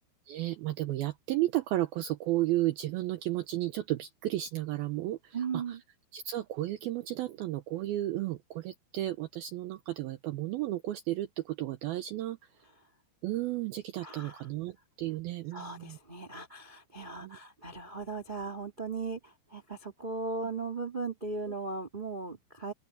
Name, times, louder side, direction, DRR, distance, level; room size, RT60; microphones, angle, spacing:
voice 1, 0.3-5.8 6.1-12.4 13.2-16.0 17.2-17.4 21.5-21.6, right 15 dB, 80° right, 2.2 m, -33 dB
voice 2, 5.3-5.8 14.0-14.4 15.5-22.7, right 4 dB, 30° right, 0.9 m, -37 dB
open air
omnidirectional pair, 5.2 m